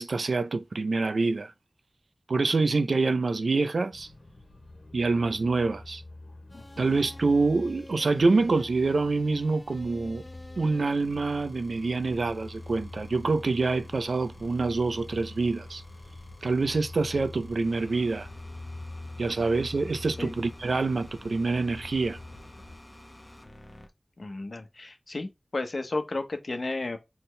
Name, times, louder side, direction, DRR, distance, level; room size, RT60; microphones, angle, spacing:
voice 1, 0.0-1.5 2.3-4.1 4.9-6.0 6.8-10.2 10.6-15.8 16.4-18.3 19.2-22.2, right 3 dB, 85° right, 0.5 m, -26 dB
sound 1, 3.9-22.8, left 2 dB, 80° left, 1.3 m, -45 dB
voice 2, 6.5-6.9 20.2-20.3 24.2-27.0, left 2 dB, 65° left, 1.1 m, -33 dB
sound 2, 6.5-23.9, left 1 dB, 30° left, 1.1 m, -51 dB
4.4 x 3.6 x 3.2 m
wide cardioid pair, 55°, 0 cm